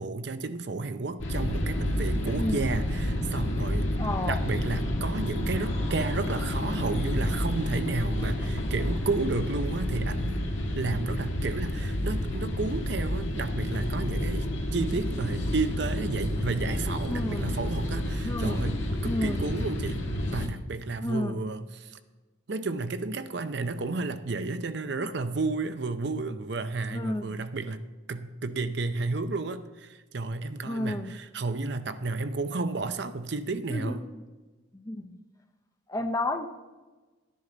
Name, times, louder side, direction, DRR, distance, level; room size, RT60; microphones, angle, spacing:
voice 1, 0.0-3.9 4.2-10.4 10.7-14.5 14.7-18.8 19.0-20.0 20.3-22.0 22.5-27.8 28.1-34.0, right 3 dB, 60° right, 11 dB, 0.6 m, -32 dB
sound 1, 1.2-20.5, left 1 dB, 70° left, 1.7 m, -30 dB
voice 2, 2.3-2.7 4.0-4.4 17.1-17.5 18.2-18.6 19.0-19.4 21.0-21.4 26.9-27.4 30.6-31.1 33.7-34.2 34.7-35.1 35.9-36.5, left 1 dB, 15° left, 7 dB, 0.6 m, -31 dB
12.0 x 10.0 x 3.9 m, 1.2 s
head